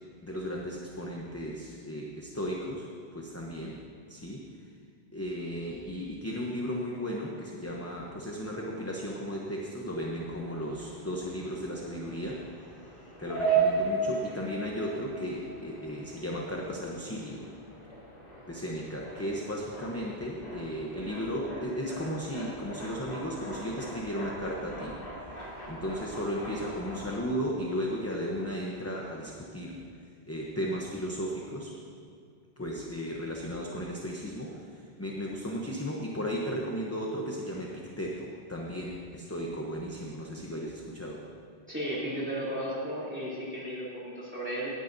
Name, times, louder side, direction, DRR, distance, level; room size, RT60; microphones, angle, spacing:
voice 1, 0.2-2.9 3.1-3.8 4.1-4.4 5.1-12.4 13.2-17.5 18.5-24.9 25.7-29.8 30.3-31.7 32.6-41.2, equal, 15° left, -2 dB, 0.7 m, -35 dB
sound 1, 9.9-27.2, right 4 dB, 60° left, 3.6 m, -37 dB
voice 2, 41.7-44.7, equal, 10° right, -8 dB, 3.0 m, -34 dB
17.5 x 10.0 x 2.7 m, 2.2 s
omnidirectional pair, 1.1 m